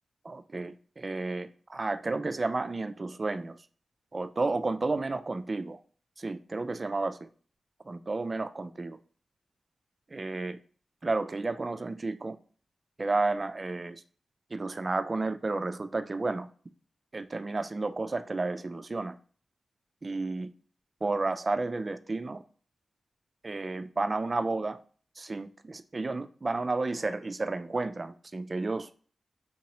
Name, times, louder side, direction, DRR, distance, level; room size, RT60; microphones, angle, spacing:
voice 1, 0.2-3.7 4.1-5.8 6.2-7.3 7.8-9.0 10.1-10.6 11.0-12.4 13.0-14.0 14.5-16.5 17.1-19.2 20.0-20.5 21.0-22.4 23.4-24.8 25.2-28.9, right 3 dB, 40° right, 0.3 m, -32 dB
3.8 x 2.8 x 2.9 m
cardioid pair, 60°, 0 cm